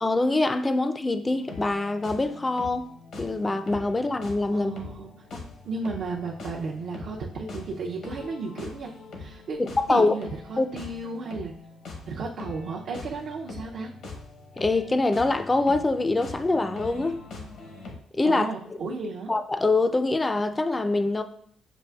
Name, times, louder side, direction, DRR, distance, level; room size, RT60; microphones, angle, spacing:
voice 1, 0.0-2.9 3.2-4.8 5.4-5.5 9.6-10.1 10.6-10.7 14.6-17.2 18.1-18.5 19.3-21.2, left 2 dB, 20° left, 0.4 m, -24 dB
sound 1, 1.2-18.0, left 3 dB, 70° left, 0.9 m, -42 dB
voice 2, 4.5-5.1 5.6-8.9 9.2-9.6 9.9-11.5 12.1-13.9 18.2-19.3, right 3 dB, 70° right, 0.5 m, -34 dB
6.8 x 2.4 x 2.3 m
cardioid pair, 90°, 0 cm